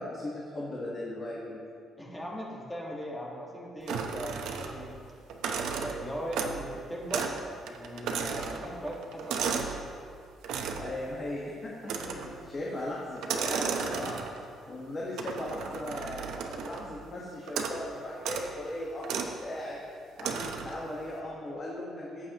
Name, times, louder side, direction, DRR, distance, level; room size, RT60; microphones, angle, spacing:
voice 1, 0.0-1.6 10.8-14.2 14.7-19.8 20.2-22.3, left 1 dB, 25° left, -5 dB, 1.4 m, -38 dB
voice 2, 2.0-5.0 5.7-7.3 7.6-9.7, equal, 10° left, -3 dB, 1.6 m, -39 dB
sound 1, 3.9-4.9 5.3-6.7 7.1-7.4 7.7-9.8 10.4-10.9 11.8-12.4 13.2-14.5 15.2-16.9 17.5-17.8 18.2-18.5 19.0-19.3 20.2-20.8, right 6 dB, 85° right, 0.9 m, -34 dB
17.0 x 7.9 x 3.0 m, 2.3 s
cardioid pair, 160°, 0 cm